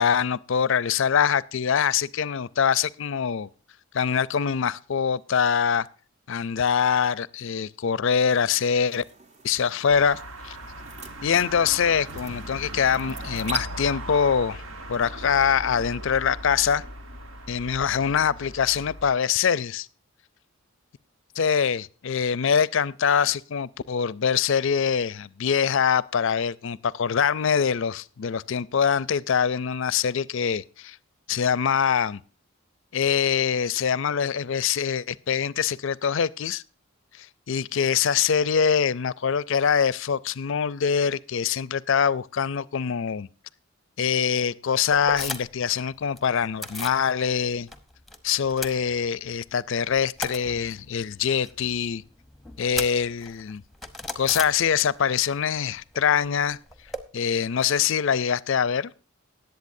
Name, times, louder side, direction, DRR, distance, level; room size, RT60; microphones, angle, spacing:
voice 1, 0.0-3.5 3.9-5.9 6.3-9.0 9.4-10.6 11.2-14.6 14.9-16.8 17.5-19.9 21.4-31.0 31.3-32.2 32.9-36.6 37.1-43.3 44.0-47.7 48.2-52.0 52.6-53.6 54.2-56.6 57.1-58.9, left 7 dB, 60° left, 0.4 m, -24 dB
sound 1, 8.5-13.6, right 2 dB, 30° right, 0.9 m, -41 dB
sound 2, 9.9-19.1, right 1 dB, 70° right, 1.3 m, -38 dB
sound 3, 44.9-45.7 45.9-47.0 47.4-48.2 48.4-49.4 49.8-55.1 55.4-57.0, left 2 dB, ahead, 0.9 m, -37 dB
19.0 x 8.1 x 2.6 m
head